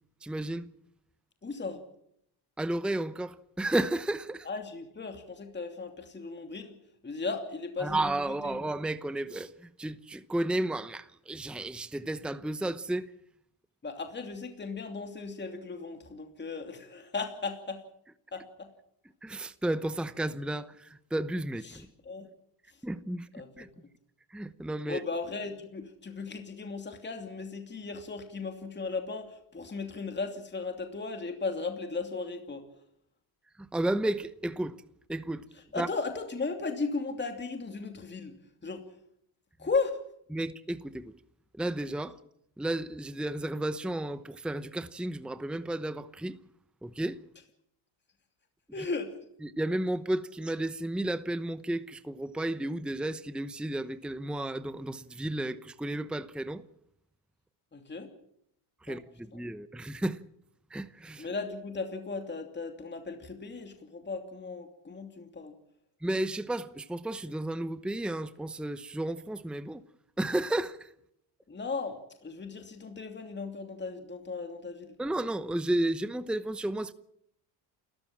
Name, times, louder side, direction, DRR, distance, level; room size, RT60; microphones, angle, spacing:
voice 1, 0.2-0.7 2.6-4.5 7.8-13.1 19.2-21.9 22.8-23.3 23.6-23.7 24.3-25.0 33.6-34.8 35.1-35.4 35.8-35.9 40.3-41.1 41.6-42.2 42.6-46.4 46.8-47.2 49.4-56.6 58.8-60.2 60.7-61.3 66.0-69.8 70.2-70.9 75.0-76.9, right 1 dB, ahead, 0.9 m, -32 dB
voice 2, 1.4-1.8 4.4-6.8 7.0-8.6 13.8-17.8 18.3-18.7 21.6-22.3 22.7-22.8 23.3-23.7 24.9-32.7 35.5-38.9 39.6-40.0 48.7-49.2 57.7-58.1 58.9-59.0 59.3-59.4 61.2-65.5 71.5-75.0, left 4 dB, 20° left, 2.8 m, -36 dB
29.0 x 14.5 x 7.4 m
cardioid pair, 110°, 49 cm